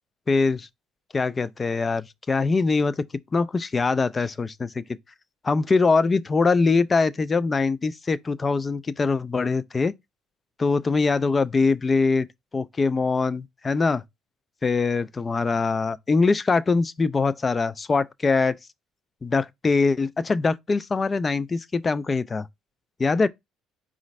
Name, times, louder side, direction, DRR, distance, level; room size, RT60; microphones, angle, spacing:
voice 1, 0.3-0.7 1.1-3.0 3.3-4.8 5.4-9.9 10.6-12.3 12.5-14.0 14.6-18.5 19.2-22.5 23.0-23.3, left 4 dB, 25° left, 0.3 m, -23 dB
5.0 x 2.4 x 3.1 m
supercardioid pair, 90°, 0 cm